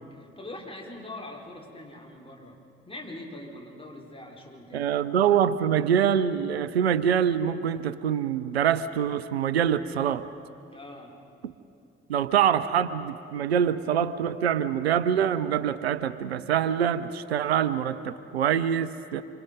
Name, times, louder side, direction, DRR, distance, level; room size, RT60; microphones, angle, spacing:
voice 1, 0.1-2.6 2.9-4.9 10.7-11.1, left 1 dB, 15° left, 0 dB, 4.2 m, -42 dB
voice 2, 4.7-10.3 12.1-19.2, right 9 dB, 80° right, 15 dB, 0.5 m, -25 dB
26.5 x 25.0 x 5.2 m, 2.6 s
figure-of-eight pair, 40°, 31 cm